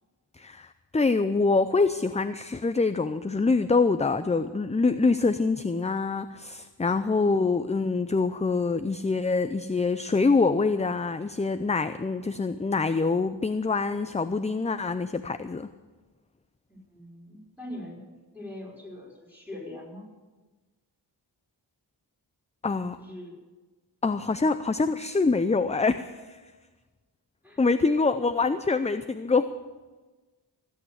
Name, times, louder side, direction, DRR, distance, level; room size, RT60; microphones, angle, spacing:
voice 1, 0.4-15.7 22.6-23.0 24.0-26.4 27.6-29.5, left 4 dB, 15° left, 11 dB, 0.5 m, -25 dB
voice 2, 16.7-18.0 18.3-20.1 23.0-23.4 27.4-27.6 27.9-28.1, left 1 dB, 5° right, -2 dB, 5.5 m, -42 dB
16.0 x 8.7 x 8.1 m, 1.3 s
cardioid pair, 60°, 47 cm